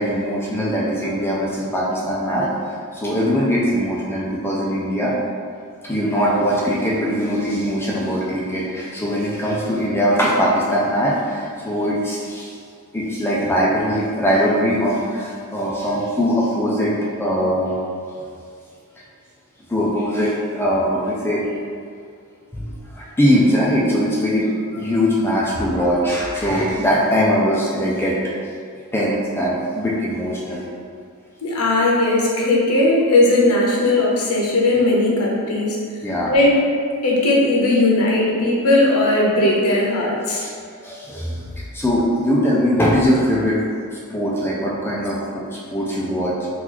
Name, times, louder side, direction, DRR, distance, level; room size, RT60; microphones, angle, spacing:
voice 1, 0.0-5.1 5.8-12.6 12.9-17.8 19.7-21.5 22.5-28.3 28.9-30.6 36.0-36.3 40.3-40.5 40.8-41.5 41.7-43.6 43.9-45.4 45.7-46.3, equal, 10° left, -6 dB, 0.4 m, -21 dB
voice 2, 31.4-35.8 36.3-36.6 37.0-40.4, left 2 dB, 75° left, -3 dB, 0.7 m, -17 dB
2.9 x 2.4 x 3.8 m, 2.3 s
head